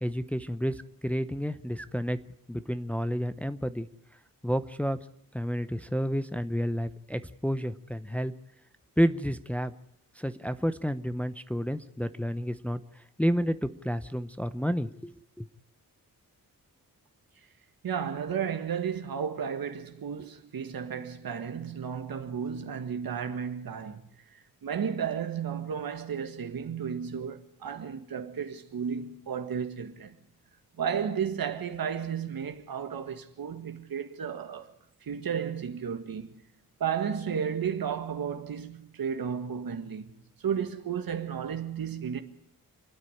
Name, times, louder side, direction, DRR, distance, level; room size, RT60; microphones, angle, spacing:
voice 1, 0.0-2.2 2.5-3.9 4.4-5.0 5.3-8.3 9.0-9.7 10.2-15.5, equal, 5° left, 0.7 m, -30 dB
voice 2, 17.8-24.0 24.3-30.2 30.8-34.7 35.0-36.3 36.8-40.1 40.4-42.2, right 7 dB, 80° right, 1.8 m, -33 dB
28.0 x 9.6 x 9.8 m
wide cardioid pair, 120°, 35 cm